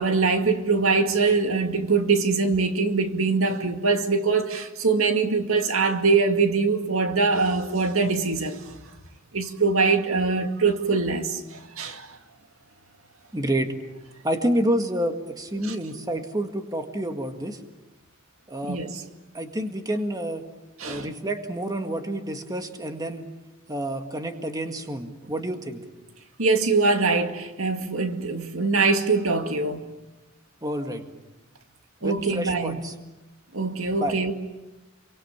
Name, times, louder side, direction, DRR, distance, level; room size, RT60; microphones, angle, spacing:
voice 1, 0.0-8.6 9.3-12.1 15.6-15.8 18.6-19.0 20.8-21.1 26.4-29.8 32.0-32.8 33.5-34.3, right 4 dB, 80° right, 2.2 m, -23 dB
voice 2, 13.3-13.7 14.2-17.6 18.5-18.8 19.3-20.4 20.8-23.2 23.7-25.8 30.6-31.0 32.0-32.9 34.0-34.2, right 1 dB, 20° right, 1.9 m, -28 dB
29.0 x 24.0 x 7.4 m
head